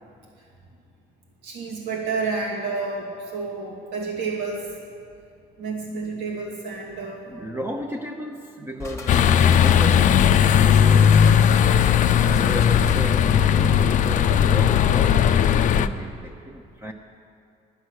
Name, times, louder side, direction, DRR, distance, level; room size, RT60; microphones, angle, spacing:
voice 1, 1.4-4.7 5.6-7.2, right 4 dB, 90° right, -3 dB, 2.3 m, -30 dB
voice 2, 7.3-11.5 12.1-16.9, right 1 dB, 15° right, 1 dB, 0.8 m, -34 dB
sound 1, 8.8-13.1, left 3 dB, 15° left, 1.2 m, -37 dB
sound 2, 9.1-15.9, left 8 dB, 50° left, 0.4 m, -17 dB
10.5 x 10.0 x 6.5 m, 2.4 s
cardioid pair, 110°, 17 cm